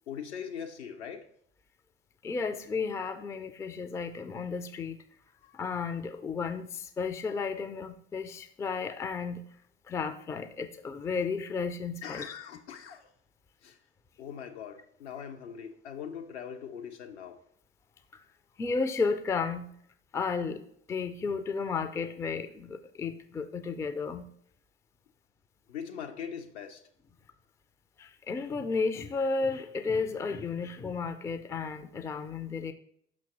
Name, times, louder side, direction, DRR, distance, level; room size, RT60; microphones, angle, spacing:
voice 1, 0.1-1.3 12.0-13.1 13.6-13.8 14.2-17.4 25.7-26.8, left 7 dB, 75° left, 5 dB, 0.7 m, -41 dB
voice 2, 2.2-5.0 5.4-9.4 9.9-12.3 18.1-18.2 18.6-19.7 20.1-24.3 28.0-32.7, left 4 dB, 10° left, 11 dB, 0.3 m, -33 dB
6.2 x 5.7 x 3.0 m, 0.66 s
figure-of-eight pair, 60°, 34 cm